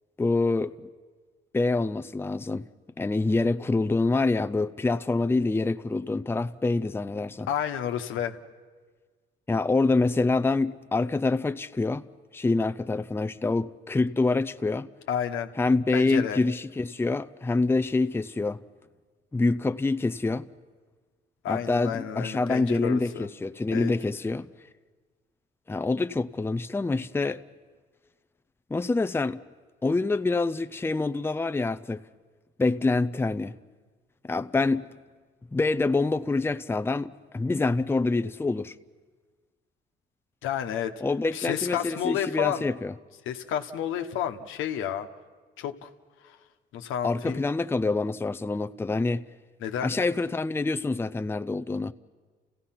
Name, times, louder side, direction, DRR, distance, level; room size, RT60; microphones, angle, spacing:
voice 1, 0.2-0.7 1.5-2.7 3.0-7.5 9.5-12.0 12.3-14.9 15.6-18.6 19.3-20.5 21.5-24.5 25.7-27.4 28.7-29.4 29.8-32.0 32.6-33.5 34.3-34.9 35.5-38.7 41.0-42.9 47.0-49.2 49.8-51.9, left 3 dB, 10° left, 0.5 m, -26 dB
voice 2, 7.5-8.3 15.1-15.5 15.9-16.4 21.4-23.3 23.7-23.9 40.4-40.9 41.3-42.7 43.3-45.1 45.6-45.9 46.7-47.4 49.6-50.0, left 9 dB, 90° left, 1.2 m, -30 dB
29.5 x 16.5 x 5.9 m
cardioid pair, 90°, 20 cm